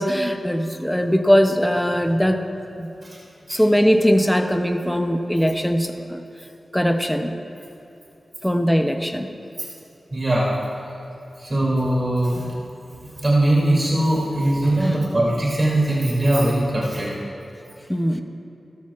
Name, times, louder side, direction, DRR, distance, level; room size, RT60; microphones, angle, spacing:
voice 1, 0.0-2.4 2.8-2.9 3.5-6.2 6.7-7.3 8.4-9.3 14.8-15.0 17.9-18.2, equal, 5° left, 5 dB, 0.6 m, -20 dB
voice 2, 10.1-10.5 11.4-12.5 13.2-17.1, right 1 dB, 25° right, -6 dB, 2.8 m, -20 dB
18.0 x 13.0 x 2.5 m, 2.7 s
wide cardioid pair, 130°, 0 cm